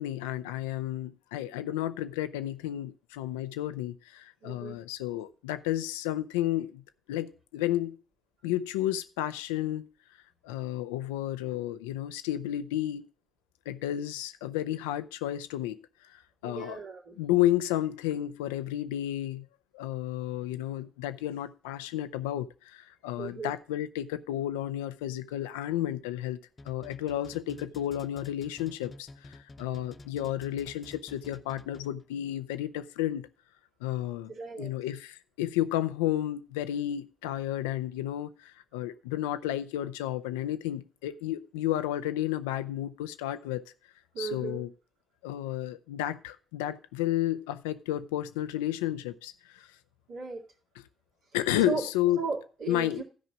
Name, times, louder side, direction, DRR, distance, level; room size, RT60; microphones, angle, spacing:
voice 1, 0.0-6.8 7.1-8.0 8.4-9.9 10.4-13.0 13.7-16.8 17.2-19.5 19.7-26.4 26.6-33.3 33.8-43.6 44.2-44.7 45.2-49.7 51.3-52.2 52.7-53.0, left 13 dB, 80° left, 0.4 m, -32 dB
voice 2, 4.4-4.8 16.4-17.2 23.2-23.5 34.3-34.7 44.1-44.6 50.1-50.4 51.7-51.8 52.2-53.0, right 5 dB, 70° right, 2.3 m, -36 dB
sound 1, 26.6-32.1, left 2 dB, 40° left, 0.8 m, -49 dB
12.5 x 5.0 x 6.0 m
hypercardioid pair, 40°, 0 cm